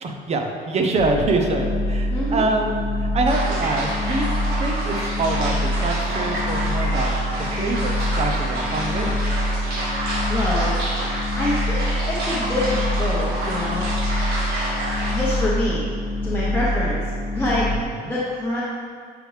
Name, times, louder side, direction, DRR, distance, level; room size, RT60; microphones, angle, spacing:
voice 1, 0.0-4.3 4.6-7.1 7.6-9.2 17.7-18.1, right 2 dB, 40° right, 3 dB, 0.8 m, -25 dB
sound 1, 1.0-17.8, left 1 dB, 65° left, 0.4 m, -25 dB
voice 2, 2.1-2.5 10.3-10.8 11.4-13.9 15.1-15.8 16.2-18.6, left 1 dB, 10° left, -8 dB, 1.0 m, -26 dB
sound 2, 3.3-15.4, right 1 dB, 70° right, 1.6 m, -29 dB
7.6 x 4.9 x 3.3 m, 2.1 s
cardioid pair, 110°, 17 cm